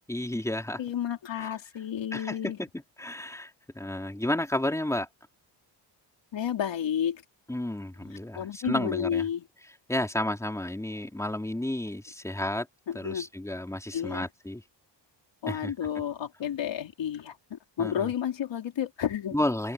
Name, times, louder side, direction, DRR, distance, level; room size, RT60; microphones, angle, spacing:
voice 1, 0.1-0.8 1.4-1.5 2.1-2.7 3.0-5.1 7.5-9.2 9.9-12.7 12.9-14.6 15.5-15.7 17.8-18.1 19.3-19.7, left 1 dB, 5° left, 3.5 m, -31 dB
voice 2, 0.8-2.6 6.3-7.2 8.0-9.4 12.9-13.3 13.9-14.3 15.4-19.4, left 9 dB, 70° left, 3.5 m, -31 dB
wide cardioid pair, 135°, 46 cm